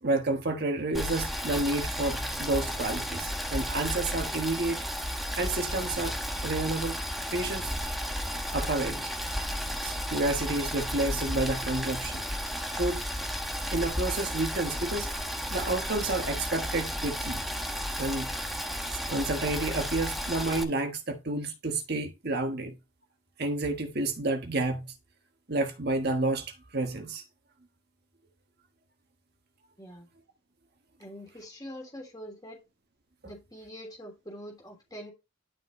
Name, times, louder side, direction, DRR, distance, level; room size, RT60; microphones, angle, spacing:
voice 1, 0.0-4.8 5.3-6.2 6.4-7.0 7.3-7.7 8.5-9.1 9.8-12.2 12.7-13.1 13.7-15.1 15.5-17.5 18.0-18.3 18.9-22.8 23.4-24.9 25.5-27.2, right 2 dB, 50° right, 1.4 m, -30 dB
Boiling, 0.9-20.6, equal, ahead, 1.0 m, -33 dB
voice 2, 29.8-30.1 31.0-32.6 33.2-35.1, equal, 20° left, 3.1 m, -44 dB
11.5 x 5.2 x 3.1 m
head